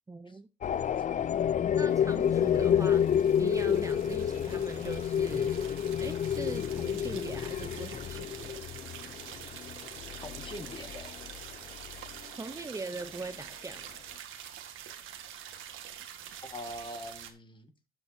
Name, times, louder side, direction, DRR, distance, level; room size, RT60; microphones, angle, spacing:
voice 1, 0.1-0.5 1.7-8.6 12.3-14.0, right 3 dB, 15° right, 0.7 m, -41 dB
sound 1, 0.6-12.2, left 9 dB, 40° left, 0.4 m, -29 dB
sound 2, 1.9-17.3, right 9 dB, 85° right, 1.5 m, -46 dB
voice 2, 10.2-11.2 16.4-17.7, left 1 dB, 25° left, 1.8 m, -43 dB
12.5 x 6.9 x 2.7 m
cardioid pair, 90°, 20 cm